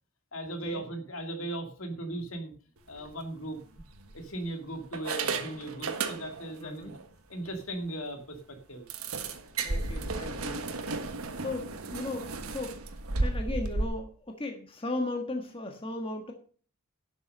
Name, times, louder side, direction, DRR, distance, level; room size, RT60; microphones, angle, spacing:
voice 1, 0.3-2.5 2.9-3.6 4.1-6.9 7.3-8.4 8.7-8.8, right 1 dB, 65° left, 5 dB, 2.5 m, -37 dB
sound 1, 2.9-3.1 3.8-4.5 4.9-6.6 6.9-7.0 7.5-7.6 7.9-8.0 8.9-13.8, right 3 dB, 80° right, 1.5 m, -34 dB
voice 2, 6.6-6.9 9.6-10.6 11.4-12.8 13.2-16.3, left 2 dB, 25° left, 3 dB, 1.5 m, -36 dB
11.5 x 7.1 x 6.6 m, 0.43 s
head